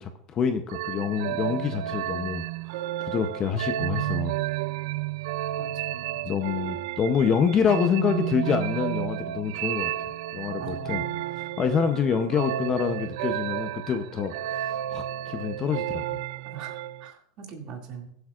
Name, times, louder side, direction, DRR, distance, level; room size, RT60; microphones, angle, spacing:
voice 1, 0.0-2.4 3.0-4.3 6.2-9.9 10.3-11.0 11.6-16.2, left 6 dB, 25° left, 7 dB, 0.6 m, -26 dB
sound 1, 0.7-17.1, right 14 dB, 65° right, 0.3 m, -32 dB
voice 2, 4.2-4.6 5.6-6.2 10.6-11.4 16.4-18.1, right 5 dB, 35° right, 2 dB, 2.2 m, -42 dB
21.0 x 8.0 x 2.4 m, 0.76 s
supercardioid pair, 175°, 2 cm